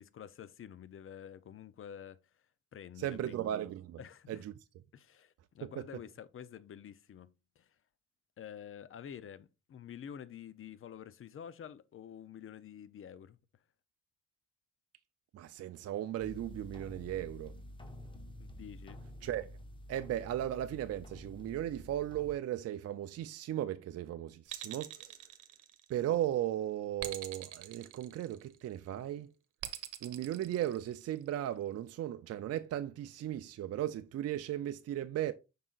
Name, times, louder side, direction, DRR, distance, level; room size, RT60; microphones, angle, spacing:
voice 1, 0.0-2.5 2.7-3.5 4.0-4.4 4.9-7.8 8.4-13.4 18.4-19.0, left 9 dB, 45° left, 0.6 m, -49 dB
voice 2, 3.0-4.0 4.3-4.5 5.6-5.7 15.3-17.6 19.2-19.6 19.9-25.2 25.9-29.3 30.0-35.3, right 12 dB, 55° right, 0.5 m, -36 dB
sound 1, 16.2-22.4, left 1 dB, 15° left, 1.1 m, -49 dB
sound 2, 24.5-26.1 27.0-28.7 29.6-31.2, right 12 dB, 80° right, 0.9 m, -44 dB
7.3 x 5.6 x 2.4 m
cardioid pair, 90°, 30 cm